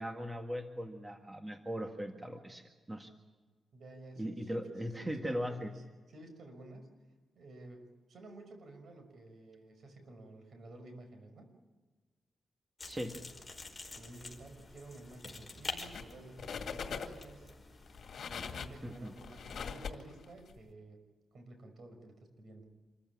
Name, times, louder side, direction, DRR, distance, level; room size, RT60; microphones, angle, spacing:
voice 1, 0.0-3.1 4.2-5.7 12.9-13.2 18.8-19.1, equal, 15° right, 4 dB, 1.9 m, -39 dB
voice 2, 3.7-4.6 5.0-5.8 6.1-6.9 7.3-11.5 13.9-17.5 18.3-21.0 21.3-22.6, right 2 dB, 65° right, 6 dB, 5.8 m, -52 dB
sound 1, 12.8-19.7, left 3 dB, 15° left, 5.0 m, -48 dB
sound 2, 15.7-16.1 16.4-17.3 17.9-20.5, left 6 dB, 65° left, 2.2 m, -42 dB
27.0 x 15.0 x 9.7 m, 1.3 s
cardioid pair, 95°, 0 cm